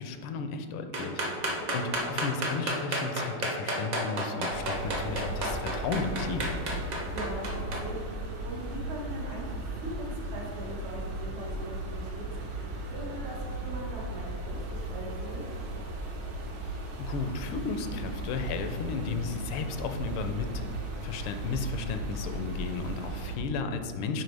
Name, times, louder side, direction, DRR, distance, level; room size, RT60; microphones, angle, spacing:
voice 1, 0.0-1.3 1.7-6.5 17.0-20.7 21.0-24.2, left 4 dB, 80° left, 7 dB, 1.5 m, -34 dB
sound 1, 0.9-7.8, right 1 dB, 45° right, 1.0 m, -31 dB
voice 2, 1.4-1.7 6.9-15.4, right 1 dB, 75° right, -4 dB, 2.4 m, -41 dB
sound 2, 4.5-23.4, right 1 dB, 60° right, 1.5 m, -36 dB
10.5 x 4.2 x 3.3 m, 2.2 s
omnidirectional pair, 2.4 m